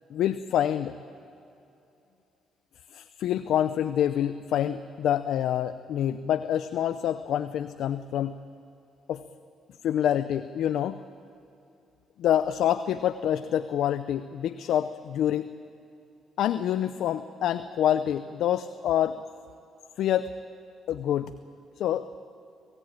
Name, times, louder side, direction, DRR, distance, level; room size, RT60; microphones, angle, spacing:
voice 1, 0.1-1.0 2.9-8.4 9.1-9.2 9.8-11.0 12.2-15.5 16.4-19.2 20.0-20.3 20.9-21.3 21.8-22.1, left 10 dB, 80° left, 11 dB, 0.6 m, -26 dB
27.0 x 17.0 x 8.9 m, 2.7 s
cardioid pair, 90°, 0 cm